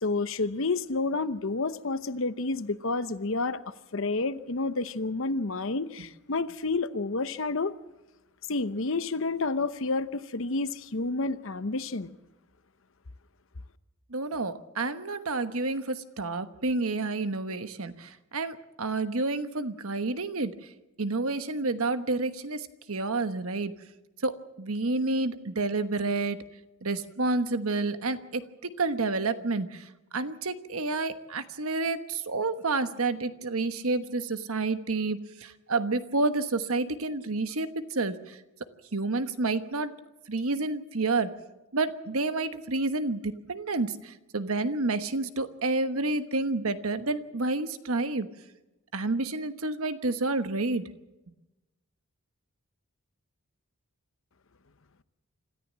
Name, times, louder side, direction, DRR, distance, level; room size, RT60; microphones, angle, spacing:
voice 1, 0.0-7.7 8.5-12.1, left 3 dB, 60° left, 0.8 m, -30 dB
voice 2, 14.1-20.5 21.0-23.7 24.2-26.4 26.8-38.4 38.9-39.9 40.3-41.3 41.7-48.3 48.9-50.9, right 3 dB, 75° right, 1.2 m, -29 dB
26.0 x 14.0 x 7.4 m
head